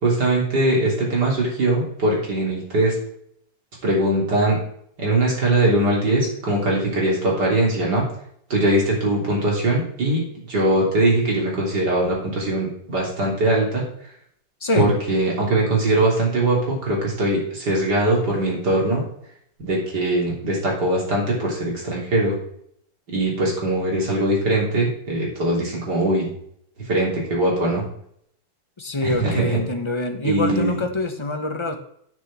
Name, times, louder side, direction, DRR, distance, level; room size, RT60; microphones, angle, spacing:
voice 1, 0.0-2.9 3.8-4.6 5.0-8.0 8.5-10.2 10.5-13.8 14.8-19.0 19.6-22.4 23.1-26.3 26.9-27.8 29.0-29.6 30.2-30.8, right 1 dB, 60° right, -3 dB, 4.0 m, -21 dB
voice 2, 14.6-14.9 28.8-31.8, left 2 dB, 20° left, 5 dB, 0.8 m, -25 dB
9.1 x 6.6 x 7.4 m, 0.69 s
omnidirectional pair, 2.0 m